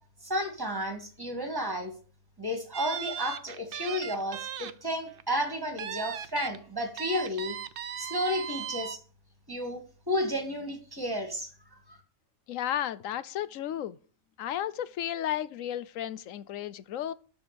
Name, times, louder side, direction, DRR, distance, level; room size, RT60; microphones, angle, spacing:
voice 1, 0.2-1.9 2.4-7.6 8.0-9.0 9.5-9.8 10.1-11.5 11.9-12.0, equal, 15° right, 2.4 m, -32 dB
sound 1, 2.7-4.7 5.1-5.2 5.8-6.6 7.0-9.0, right 9 dB, 60° right, 0.6 m, -37 dB
voice 2, 12.5-14.0 14.4-17.1, left 11 dB, 70° left, 1.0 m, -33 dB
12.5 x 4.5 x 8.5 m
omnidirectional pair, 1.5 m